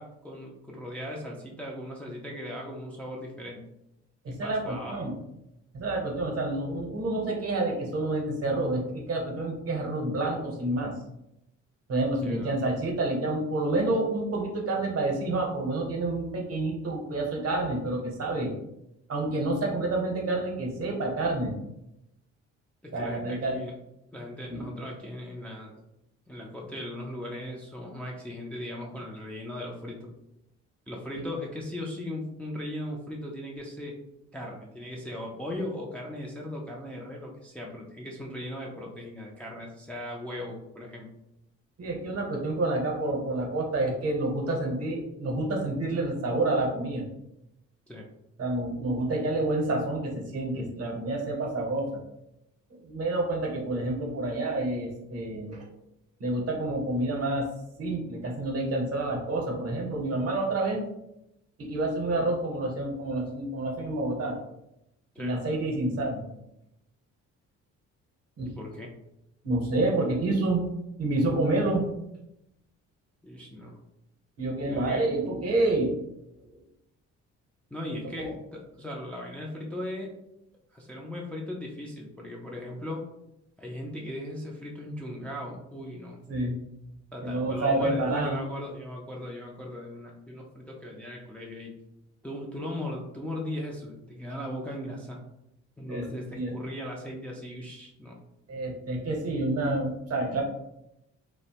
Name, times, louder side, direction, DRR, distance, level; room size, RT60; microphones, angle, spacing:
voice 1, 0.0-3.6 4.3-5.0 12.2-12.6 22.8-23.7 24.1-25.8 26.3-30.1 30.9-34.0 34.3-41.1 47.9-48.1 65.2-65.3 68.4-68.9 73.2-73.7 74.6-75.1 77.7-80.1 80.7-83.0 83.6-86.2 87.1-91.7 92.2-95.2 95.8-98.2, left 1 dB, 5° left, -2 dB, 0.4 m, -38 dB
voice 2, 4.2-5.1 5.7-10.9 11.9-18.5 19.1-21.5 22.9-23.6 24.5-24.7 31.1-31.2 41.8-47.1 48.4-52.0 52.7-55.7 56.2-57.5 57.8-60.8 61.6-64.4 65.2-66.2 68.4-68.5 69.4-70.6 71.0-71.9 74.4-75.9 78.2-78.3 86.3-86.6 87.2-88.4 95.9-96.0 96.3-96.5 98.5-100.4, right 2 dB, 50° right, 1 dB, 0.8 m, -28 dB
2.7 x 2.1 x 2.8 m, 0.84 s
cardioid pair, 90°, 30 cm